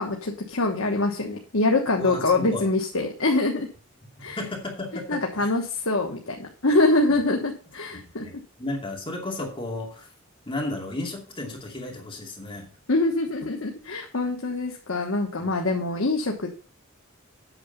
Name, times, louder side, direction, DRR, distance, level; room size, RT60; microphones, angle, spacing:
voice 1, 0.0-3.7 4.2-4.4 5.1-8.3 12.9-16.5, left 2 dB, 70° left, 1 dB, 1.3 m, -24 dB
voice 2, 2.0-2.7 4.4-5.5 7.1-7.2 8.2-10.1 10.5-12.7 15.4-15.5, left 2 dB, 25° left, 0 dB, 2.6 m, -33 dB
8.7 x 6.8 x 5.3 m, 0.38 s
head